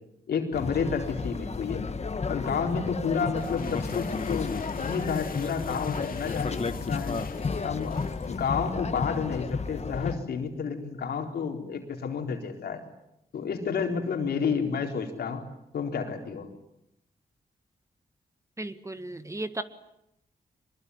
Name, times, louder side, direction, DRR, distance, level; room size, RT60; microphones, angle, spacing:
voice 1, 0.3-1.8 2.3-7.2 7.6-8.0 8.3-12.8 13.3-15.4 15.7-16.5, left 6 dB, 85° left, 3 dB, 4.1 m, -30 dB
sound 1, 0.5-10.2, left 4 dB, 45° left, 1.7 m, -32 dB
sound 2, 3.2-8.8, left 6 dB, 65° left, 2.0 m, -46 dB
voice 2, 18.6-19.6, right 2 dB, 20° right, 10 dB, 1.8 m, -35 dB
24.5 x 22.5 x 9.7 m, 0.83 s
cardioid pair, 75°, 16 cm